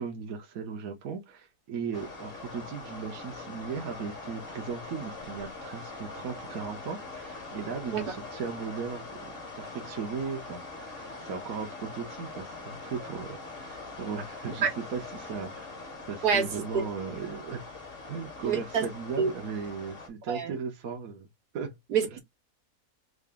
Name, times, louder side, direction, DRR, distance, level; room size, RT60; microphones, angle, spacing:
voice 1, 0.0-15.7 16.1-17.7 18.1-21.3 21.5-21.7 22.1-22.2, right 5 dB, 65° right, 1.3 m, -37 dB
sound 1, 1.9-20.1, left 3 dB, 40° left, 1.5 m, -43 dB
voice 2, 18.5-18.8 19.2-19.3 20.3-20.5 21.9-22.0, right 6 dB, 80° right, 1.7 m, -26 dB
3.8 x 2.6 x 3.5 m
omnidirectional pair, 1.6 m